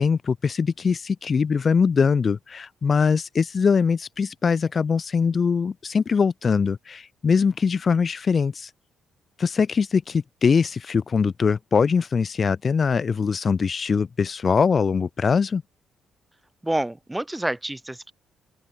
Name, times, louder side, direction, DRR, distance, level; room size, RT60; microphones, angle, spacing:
voice 1, 0.0-8.7 9.4-15.6, left 5 dB, 40° left, 0.6 m, -22 dB
voice 2, 16.6-18.1, right 1 dB, 10° right, 1.1 m, -28 dB
open air
cardioid pair, 90°, 0 cm